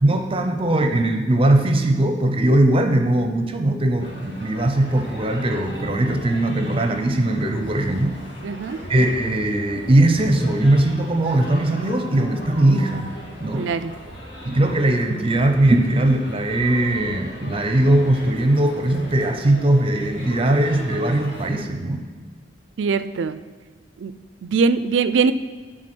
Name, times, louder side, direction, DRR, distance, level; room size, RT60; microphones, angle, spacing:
voice 1, 0.0-8.2 8.9-13.1 13.4-13.7 14.4-22.1, right 1 dB, 30° right, 6 dB, 0.6 m, -20 dB
sound 1, 4.0-21.6, left 1 dB, 70° left, 2.1 m, -39 dB
voice 2, 8.4-8.8 13.5-13.9 22.8-23.4 24.0-24.1 24.4-25.3, right 5 dB, 75° right, 13 dB, 0.4 m, -21 dB
10.5 x 3.8 x 6.2 m, 1.5 s
head